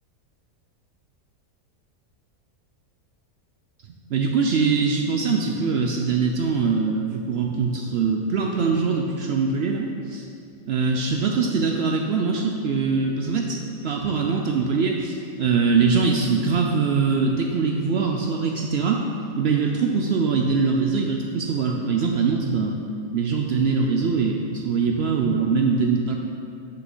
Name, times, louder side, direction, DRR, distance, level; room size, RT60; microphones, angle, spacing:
voice 1, 4.1-10.3 10.7-19.0 19.4-22.8 23.1-26.1, right 5 dB, 80° right, 1 dB, 0.5 m, -22 dB
6.3 x 5.6 x 5.4 m, 2.6 s
omnidirectional pair, 1.6 m